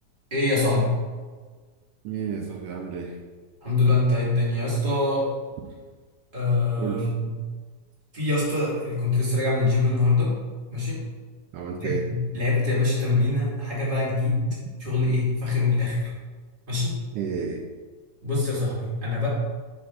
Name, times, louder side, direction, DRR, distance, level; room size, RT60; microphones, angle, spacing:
voice 1, 0.3-1.0 3.6-5.3 6.3-7.3 8.1-10.3 10.7-11.0 11.8-14.4 14.8-16.1 16.7-17.0 18.2-19.3, left 3 dB, 20° right, -7 dB, 1.6 m, -24 dB
voice 2, 2.0-3.2 6.8-7.1 11.5-12.1 17.1-17.6, right 7 dB, 90° right, 1 dB, 1.3 m, -31 dB
7.5 x 5.2 x 2.4 m, 1.4 s
omnidirectional pair, 3.3 m